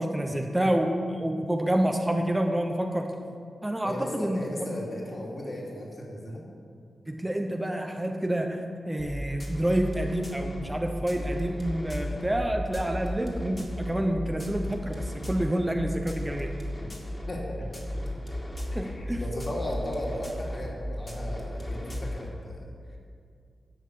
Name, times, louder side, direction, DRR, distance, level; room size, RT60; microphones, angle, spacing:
voice 1, 0.0-3.1 3.6-4.4 7.1-16.5 18.7-19.2, right 1 dB, 15° right, 3 dB, 0.8 m, -28 dB
voice 2, 3.8-6.4 16.8-16.9 17.3-17.8 18.7-22.6, left 1 dB, 45° left, -3 dB, 2.5 m, -36 dB
sound 1, 9.0-22.3, equal, 25° left, 2.1 m, -35 dB
11.5 x 5.4 x 7.8 m, 2.3 s
wide cardioid pair, 85°, 0 cm